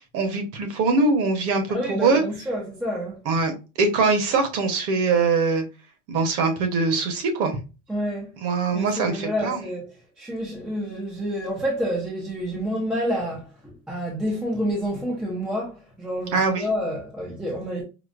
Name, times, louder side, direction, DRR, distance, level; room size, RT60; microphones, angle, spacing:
voice 1, 0.1-2.2 3.3-3.5 3.8-5.6 6.1-7.6 8.4-9.6 16.3-16.6, right 4 dB, 40° right, 0.9 m, -22 dB
voice 2, 1.7-3.2 7.9-8.3 8.7-9.9 10.2-17.8, equal, ahead, 0.3 m, -28 dB
4.9 x 2.0 x 2.4 m
cardioid pair, 170°, 37 cm